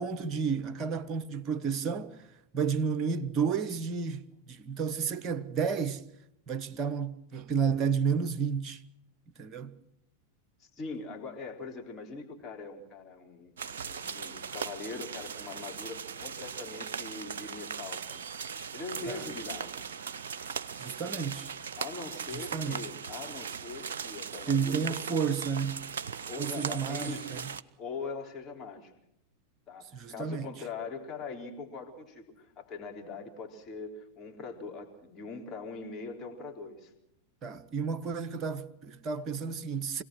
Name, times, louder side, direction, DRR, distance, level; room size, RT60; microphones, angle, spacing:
voice 1, 0.0-2.2 2.5-6.0 6.5-8.8 9.4-9.7 19.1-19.2 20.8-21.5 22.3-22.8 24.5-25.8 26.4-27.4 29.9-30.5 37.4-40.0, right 6 dB, 30° right, 1.1 m, -31 dB
voice 2, 10.6-18.2 18.7-19.8 21.8-25.0 26.3-27.5 27.8-28.9 29.7-36.9, left 4 dB, 25° left, 3.7 m, -42 dB
sound 1, 13.6-27.6, right 6 dB, 60° right, 0.7 m, -39 dB
25.5 x 17.5 x 6.3 m
figure-of-eight pair, 90°, 0 cm